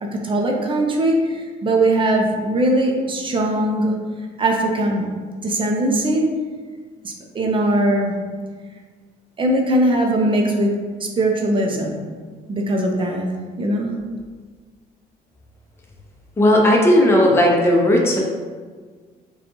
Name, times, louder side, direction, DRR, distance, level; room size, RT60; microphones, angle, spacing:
voice 1, 0.0-4.0 4.4-5.1 5.4-6.2 7.0-8.1 9.4-10.7 11.0-12.0 12.5-13.3 13.6-13.9, right 1 dB, 30° right, 1 dB, 0.6 m, -20 dB
voice 2, 16.4-18.2, left 1 dB, 15° left, -2 dB, 0.6 m, -15 dB
4.9 x 2.3 x 3.0 m, 1.5 s
cardioid pair, 110°, 17 cm